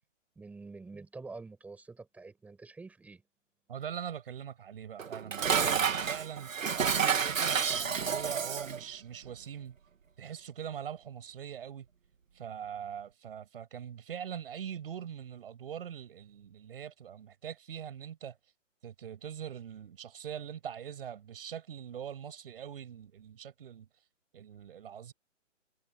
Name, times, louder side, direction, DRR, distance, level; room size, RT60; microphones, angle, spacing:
voice 1, 0.4-3.2, right 3 dB, 5° right, 7.8 m, -47 dB
voice 2, 3.7-6.5 6.9-9.8 10.2-11.9 12.3-18.3 18.8-23.9 24.3-25.1, right 8 dB, 45° right, 8.0 m, -42 dB
Dishes pots and pans, 5.0-8.8, right 7 dB, 90° right, 2.5 m, -29 dB
hypercardioid pair, 170°, 38 cm